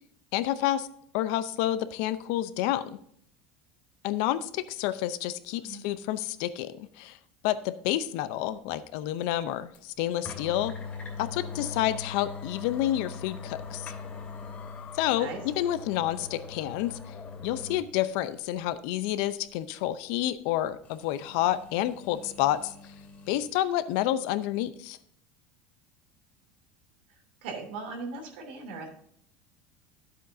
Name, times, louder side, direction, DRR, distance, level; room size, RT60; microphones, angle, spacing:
voice 1, 0.3-0.9 1.1-3.0 4.0-7.2 7.4-10.7 11.2-13.9 14.9-17.0 17.4-22.7 23.3-25.0, left 13 dB, 70° left, 14 dB, 0.6 m, -29 dB
sound 1, 9.7-9.8 10.2-17.9 18.2-18.3 20.8-23.5, left 5 dB, 30° left, 2.6 m, -41 dB
voice 2, 27.4-28.9, right 4 dB, 90° right, 1 dB, 2.8 m, -38 dB
11.5 x 8.1 x 2.7 m, 0.67 s
supercardioid pair, 110°, 5 cm